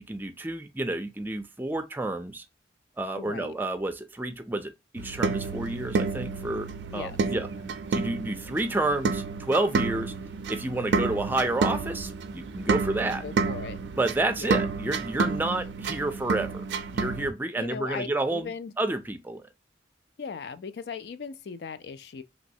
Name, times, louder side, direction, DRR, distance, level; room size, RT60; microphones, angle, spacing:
voice 1, 0.1-2.4 3.0-6.7 6.9-7.5 7.9-10.1 10.5-13.2 13.9-16.6 16.9-18.5 18.8-19.4, right 2 dB, 10° right, 0.4 m, -30 dB
voice 2, 3.1-3.5 6.9-7.2 13.2-13.8 14.4-14.7 17.5-18.7 20.2-22.2, left 5 dB, 65° left, 0.4 m, -38 dB
sound 1, 5.0-17.3, right 4 dB, 80° right, 0.4 m, -30 dB
3.0 x 3.0 x 2.7 m
head